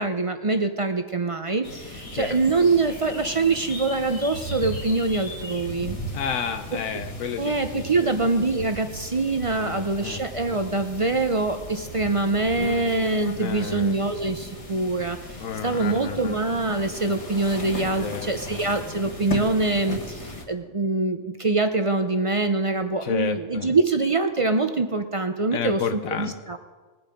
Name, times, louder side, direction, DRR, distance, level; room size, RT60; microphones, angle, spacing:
voice 1, 0.0-6.0 6.7-6.8 7.4-15.2 15.6-25.8 26.2-26.6, right 3 dB, 40° right, 7 dB, 0.4 m, -24 dB
sound 1, 1.6-20.4, left 1 dB, 25° left, 1.5 m, -37 dB
voice 2, 2.1-2.6 6.1-8.1 9.5-10.2 13.4-14.0 15.4-16.4 18.0-18.3 23.0-23.7 25.5-26.3, left 7 dB, 80° left, 6 dB, 1.1 m, -31 dB
20.0 x 8.0 x 5.1 m, 1.4 s
omnidirectional pair, 1.4 m